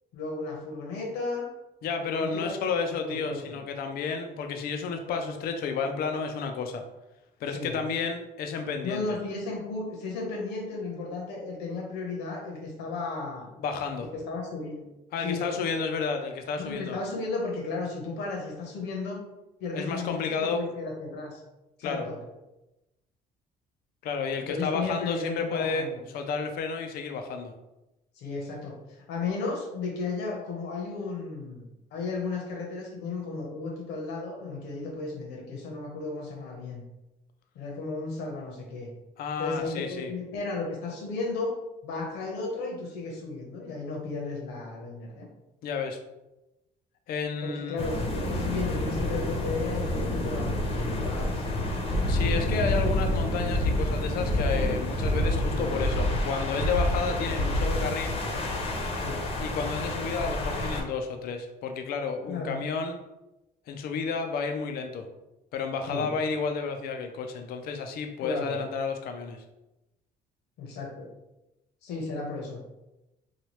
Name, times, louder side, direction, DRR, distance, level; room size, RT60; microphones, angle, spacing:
voice 1, 0.1-1.5 2.0-3.6 7.5-7.8 8.8-13.5 14.0-14.9 15.2-15.8 16.6-19.2 19.6-21.4 21.8-22.2 24.5-26.0 28.1-36.8 37.5-38.9 39.4-41.5 41.8-45.3 47.4-51.5 59.0-59.3 62.2-62.6 65.9-66.1 68.2-68.6 70.6-71.1 71.8-72.6, left 3 dB, 85° left, 0 dB, 1.0 m, -34 dB
voice 2, 1.8-6.8 7.4-9.2 13.6-14.1 15.1-17.0 19.7-20.7 21.8-22.1 24.0-27.5 39.2-40.1 45.6-46.0 47.1-47.8 52.1-58.2 59.4-63.0 63.7-65.1 65.5-69.4, left 5 dB, 65° left, 5 dB, 0.4 m, -31 dB
sound 1, 47.8-60.8, left 1 dB, 35° left, 0.7 m, -30 dB
sound 2, 51.9-57.9, equal, ahead, 0.9 m, -28 dB
3.0 x 2.3 x 3.1 m, 0.97 s
cardioid pair, 110°, 17 cm